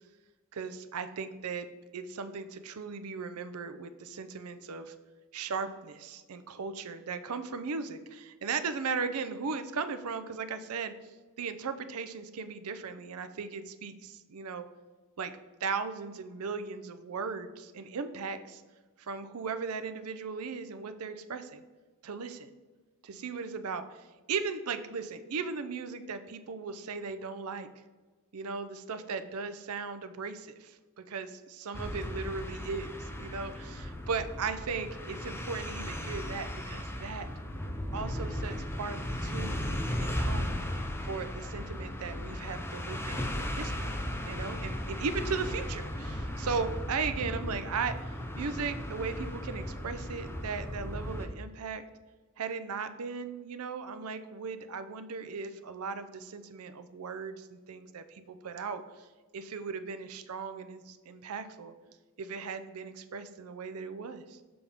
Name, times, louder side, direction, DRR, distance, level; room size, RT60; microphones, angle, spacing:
voice 1, 0.5-4.9 5.3-10.9 11.4-14.7 15.2-15.3 15.6-18.6 19.0-21.6 22.0-22.5 23.0-27.7 28.3-37.3 37.9-39.7 40.0-40.6 41.0-44.0 44.3-51.8 52.4-59.1 59.3-61.7 62.2-64.4, right 5 dB, 80° right, 10 dB, 0.5 m, -37 dB
sound 1, 31.7-51.3, left 1 dB, 10° left, 0.6 m, -36 dB
6.8 x 5.3 x 3.5 m, 1.3 s
head